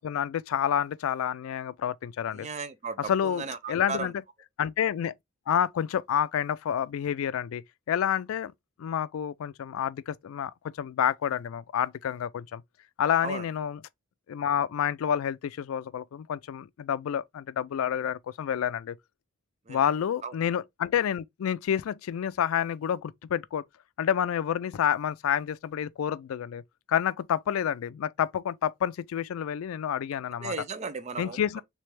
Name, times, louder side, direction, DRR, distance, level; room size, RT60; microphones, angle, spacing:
voice 1, 0.0-2.5 3.1-4.1 4.6-5.1 5.5-7.6 7.9-8.5 8.8-10.5 10.8-12.6 13.0-13.8 14.3-19.0 19.7-23.6 24.0-26.6 26.9-30.5 31.2-31.6, left 9 dB, 85° left, 0.3 m, -29 dB
voice 2, 2.3-4.1 13.2-13.5 19.7-19.9 20.2-20.3 30.4-31.6, right 4 dB, 35° right, 0.4 m, -36 dB
3.3 x 3.2 x 3.2 m
head